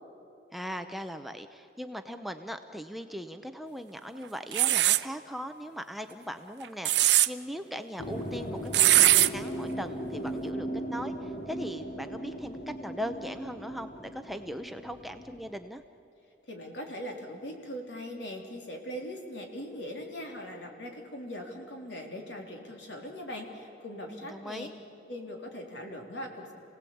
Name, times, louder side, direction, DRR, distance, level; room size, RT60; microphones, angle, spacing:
voice 1, 0.5-15.8 24.1-24.7, equal, ahead, 7 dB, 0.7 m, -39 dB
sound 1, 4.5-5.0 6.6-7.3 8.7-9.3, right 15 dB, 65° right, 0.6 m, -20 dB
sound 2, 8.0-15.5, equal, 40° left, 1.4 m, -38 dB
voice 2, 16.5-24.7 25.1-26.5, equal, 75° left, 2 dB, 3.6 m, -40 dB
28.5 x 18.0 x 8.6 m, 3.0 s
head